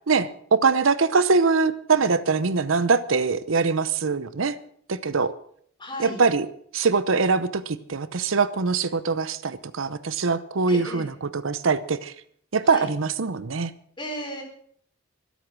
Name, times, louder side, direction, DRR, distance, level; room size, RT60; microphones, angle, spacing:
voice 1, 0.1-4.6 4.9-5.3 6.0-6.5 6.7-12.1 12.5-13.7, right 4 dB, 85° right, 15 dB, 0.8 m, -23 dB
voice 2, 5.8-6.2 10.7-11.1 12.6-12.9 14.0-14.4, equal, 25° left, 2 dB, 4.4 m, -34 dB
23.0 x 8.2 x 6.2 m, 0.63 s
head